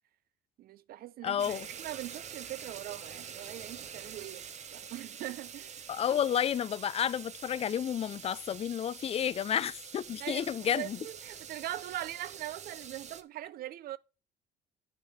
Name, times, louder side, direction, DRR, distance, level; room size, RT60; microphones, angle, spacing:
voice 1, 0.6-5.9 10.2-14.0, right 13 dB, 60° right, 0.6 m, -41 dB
voice 2, 1.2-1.7 5.9-11.0, left 9 dB, 35° left, 0.4 m, -31 dB
sound 1, 1.4-13.2, right 7 dB, 40° right, 0.9 m, -46 dB
9.6 x 6.6 x 3.5 m
cardioid pair, 110°, 17 cm